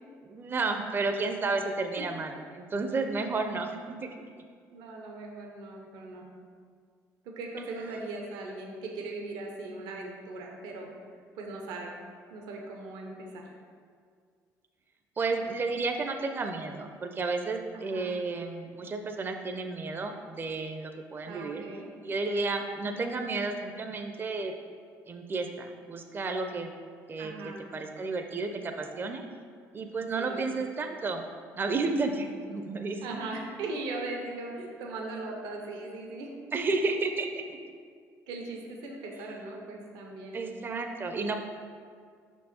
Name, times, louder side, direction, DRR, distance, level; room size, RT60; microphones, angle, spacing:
voice 1, 0.2-4.2 7.9-8.0 15.2-21.7 22.0-24.5 25.1-26.7 27.1-29.2 29.7-31.3 31.6-33.2 36.5-37.6 40.3-41.4, right 3 dB, 30° right, 5 dB, 0.5 m, -32 dB
voice 2, 4.7-6.3 7.2-10.9 11.3-11.9 12.3-13.4 17.7-18.1 21.3-21.9 22.8-23.1 27.2-27.6 30.2-30.4 33.0-36.3 38.3-40.4, right 2 dB, 85° right, 1 dB, 0.8 m, -39 dB
5.8 x 4.5 x 4.2 m, 2.1 s
supercardioid pair, 80°, 7 cm